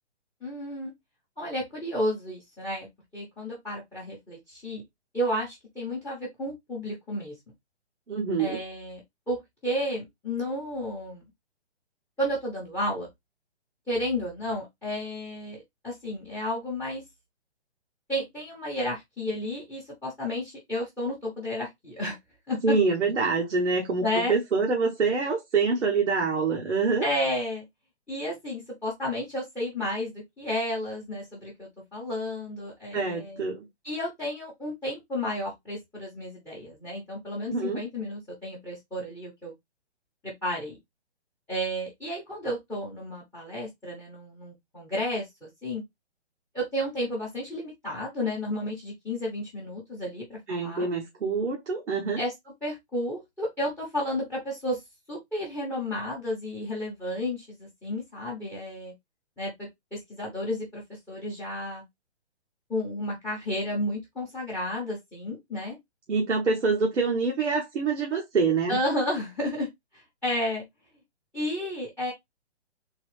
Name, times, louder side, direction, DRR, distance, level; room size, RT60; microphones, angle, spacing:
voice 1, 0.4-0.9 1.4-4.8 5.1-7.3 8.4-9.0 9.3-11.2 12.2-13.1 13.9-17.0 18.1-22.2 22.5-22.7 24.0-24.3 27.0-27.6 28.1-33.4 33.8-39.5 40.2-40.8 41.5-45.8 46.5-50.9 52.2-52.3 52.6-54.8 55.1-58.9 59.4-61.8 62.7-65.8 68.7-69.7 69.9-70.6 71.3-72.1, left 1 dB, 5° left, 0.8 m, -32 dB
voice 2, 8.1-8.6 22.6-27.1 32.9-33.7 37.5-37.8 50.5-52.2 66.1-68.8, right 4 dB, 85° right, 1.2 m, -26 dB
3.8 x 2.6 x 3.1 m
hypercardioid pair, 150°, 34 cm